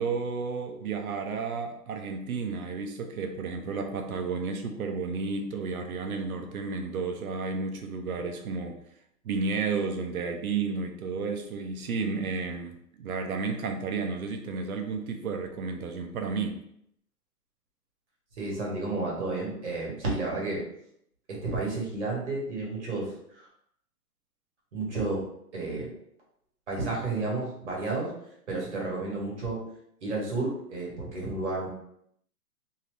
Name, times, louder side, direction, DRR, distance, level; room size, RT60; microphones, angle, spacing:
voice 1, 0.0-8.8 9.2-16.6, right 4 dB, 65° right, 5 dB, 0.6 m, -32 dB
voice 2, 18.4-20.6 21.3-23.5 24.7-25.3 25.5-25.9 26.7-28.1 28.5-29.6 30.0-31.7, right 3 dB, 45° right, -3 dB, 1.2 m, -31 dB
2.8 x 2.6 x 3.2 m, 0.72 s
hypercardioid pair, 180°, 47 cm